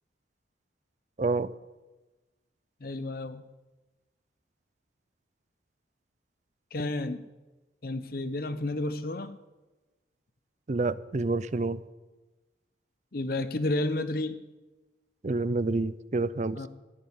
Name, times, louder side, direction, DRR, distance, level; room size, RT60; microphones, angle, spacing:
voice 1, 1.2-1.5 10.7-11.8 15.2-16.7, right 3 dB, 40° right, 17 dB, 0.5 m, -28 dB
voice 2, 2.8-3.4 6.7-7.3 7.8-9.3 13.1-14.4 16.6-16.7, left 2 dB, 55° left, 11 dB, 0.7 m, -31 dB
15.5 x 7.7 x 9.5 m, 1.2 s
head